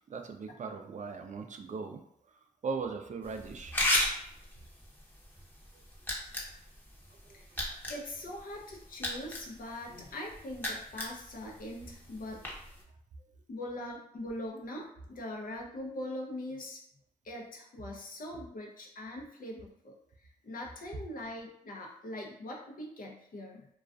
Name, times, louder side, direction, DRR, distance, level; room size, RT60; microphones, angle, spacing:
voice 1, 0.0-2.0 2.6-3.8 7.3-7.4, right 5 dB, 50° right, 5 dB, 0.4 m, -38 dB
sound 1, 3.2-12.8, left 1 dB, 10° left, 0.8 m, -37 dB
voice 2, 7.9-12.6 13.5-16.8 17.2-19.9 20.4-23.7, left 1 dB, 65° left, -1 dB, 0.6 m, -42 dB
2.3 x 2.3 x 2.4 m, 0.70 s
supercardioid pair, 40°, 16 cm